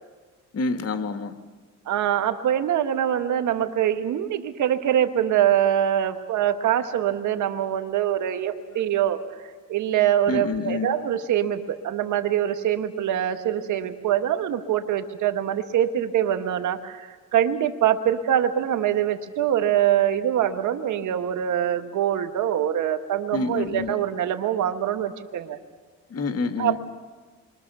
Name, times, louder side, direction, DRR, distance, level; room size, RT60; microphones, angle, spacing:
voice 1, 0.5-1.3 10.3-10.9 23.3-23.9 26.1-26.8, left 4 dB, 55° left, 8 dB, 2.0 m, -27 dB
voice 2, 1.9-9.2 9.7-25.6 26.6-26.8, right 10 dB, 80° right, 8 dB, 1.8 m, -24 dB
28.5 x 23.5 x 7.0 m, 1.4 s
cardioid pair, 90°, 30 cm